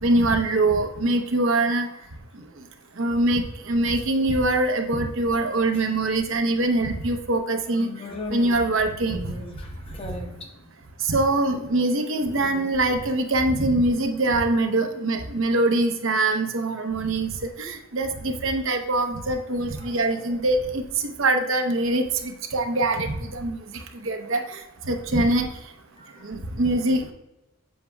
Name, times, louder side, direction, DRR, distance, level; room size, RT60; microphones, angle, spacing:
voice 1, 0.0-1.9 3.0-7.9 8.3-9.2 11.0-23.6 24.0-24.6 24.9-25.5 26.2-27.1, right 2 dB, 65° right, 5 dB, 0.8 m, -23 dB
voice 2, 7.8-8.7 9.1-10.3 12.1-12.7 19.8-20.3, left 2 dB, 25° left, 2 dB, 0.9 m, -38 dB
7.4 x 5.8 x 2.2 m, 0.93 s
head